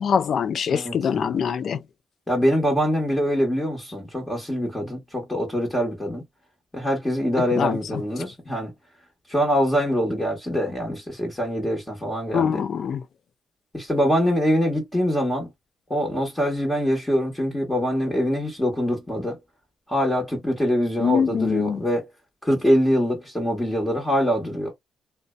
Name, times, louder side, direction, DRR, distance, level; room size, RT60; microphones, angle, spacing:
voice 1, 0.0-1.8 7.4-8.0 12.3-13.0 21.0-21.8, left 7 dB, 60° left, 0.3 m, -24 dB
voice 2, 0.7-1.2 2.3-6.2 6.7-8.7 9.3-12.6 13.7-15.5 15.9-19.4 19.9-22.1 22.4-24.7, equal, 10° left, 1.1 m, -24 dB
2.6 x 2.1 x 2.3 m
cardioid pair, 90°, 0 cm